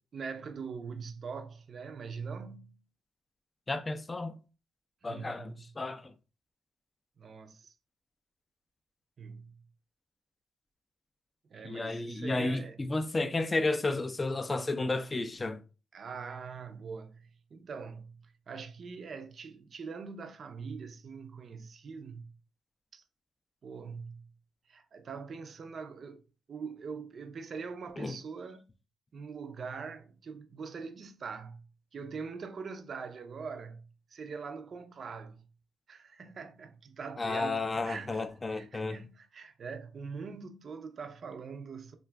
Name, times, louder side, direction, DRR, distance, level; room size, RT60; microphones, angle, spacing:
voice 1, 0.1-2.8 5.0-5.6 7.2-7.7 9.2-9.6 11.5-12.8 15.9-22.3 22.9-23.0 23.6-24.3 24.7-26.2 26.5-28.7 29.1-35.5 35.9-42.0, right 5 dB, 50° right, 0.4 m, -43 dB
voice 2, 3.7-4.4 5.0-6.1 11.6-15.6 28.0-28.2 37.2-39.0, left 2 dB, 25° left, 0.3 m, -32 dB
2.5 x 2.2 x 3.3 m
cardioid pair, 90°, 0 cm